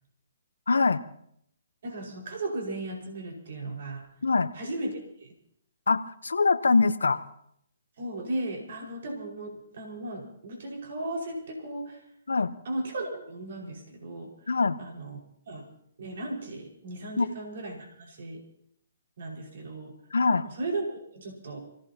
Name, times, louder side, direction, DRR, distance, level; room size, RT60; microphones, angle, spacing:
voice 1, 0.7-1.0 4.2-4.5 5.9-7.2 12.3-12.6 14.5-14.8 17.2-17.3 20.1-20.5, left 4 dB, 85° left, 12 dB, 1.0 m, -23 dB
voice 2, 1.8-4.1 4.5-5.3 8.0-12.0 12.7-15.2 15.5-15.7 16.0-18.4 19.2-19.9 20.4-21.6, right 2 dB, 65° right, 1 dB, 5.3 m, -36 dB
27.5 x 17.5 x 2.9 m, 0.69 s
hypercardioid pair, 140°, 0 cm